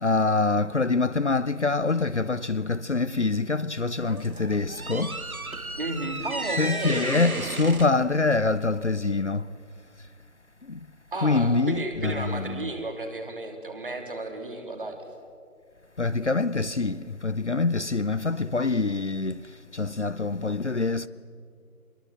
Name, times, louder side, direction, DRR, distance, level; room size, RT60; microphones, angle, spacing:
voice 1, 0.0-5.1 6.6-9.4 11.2-11.7 16.0-19.3 19.8-21.1, left 3 dB, 55° left, 0.7 m, -25 dB
sound 1, 3.9-9.1, right 3 dB, 75° right, 2.0 m, -34 dB
voice 2, 5.8-7.1 11.1-15.0, right 2 dB, 35° right, 3.0 m, -33 dB
25.5 x 22.0 x 7.8 m
figure-of-eight pair, 170°, 43 cm